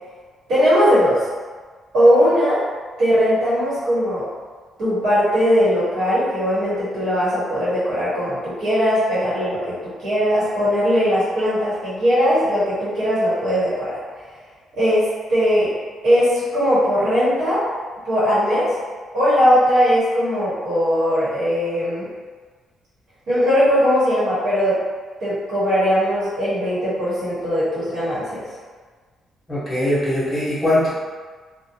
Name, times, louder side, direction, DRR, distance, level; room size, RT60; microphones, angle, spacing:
voice 1, 0.5-1.3 1.9-2.6 3.0-4.2 4.8-9.7 10.0-13.9 14.8-15.0 15.3-15.7 16.0-17.6 18.0-18.7 19.1-22.1 23.3-24.8 25.2-28.4, equal, 65° right, -11 dB, 1.1 m, -19 dB
voice 2, 29.5-30.9, left 1 dB, 15° left, -10 dB, 0.8 m, -20 dB
2.5 x 2.2 x 2.7 m, 1.5 s
cardioid pair, 180°, 0 cm